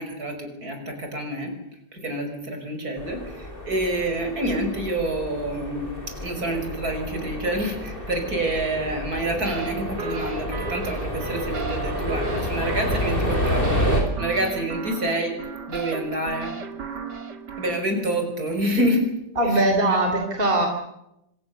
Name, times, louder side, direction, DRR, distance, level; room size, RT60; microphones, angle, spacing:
voice 1, 0.0-1.5 1.9-15.4 15.7-16.5 17.6-20.0, right 1 dB, 60° right, 5 dB, 6.2 m, -28 dB
sound 1, 3.0-14.0, equal, 30° left, 5.8 m, -29 dB
sound 2, 9.4-17.8, right 4 dB, 75° right, 2.5 m, -35 dB
voice 2, 19.4-20.7, right 1 dB, 30° right, 4 dB, 3.6 m, -21 dB
26.0 x 26.0 x 6.9 m, 0.83 s
omnidirectional pair, 1.8 m